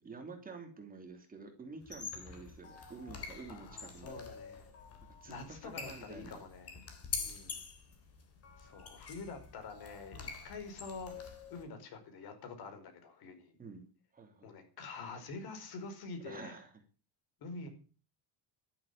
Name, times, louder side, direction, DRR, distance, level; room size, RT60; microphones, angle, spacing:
voice 1, 0.0-4.1 5.2-6.4 13.6-14.5 16.2-16.7, right 4 dB, 20° right, 3 dB, 3.0 m, -49 dB
sound 1, 1.8-11.6, left 5 dB, 35° left, 3.6 m, -46 dB
voice 2, 3.5-4.7 5.3-6.8 7.2-7.6 8.6-13.5 14.4-16.6 17.4-17.7, left 4 dB, 60° left, 6 dB, 5.0 m, -47 dB
12.0 x 11.0 x 8.6 m, 0.39 s
cardioid pair, 175°, 41 cm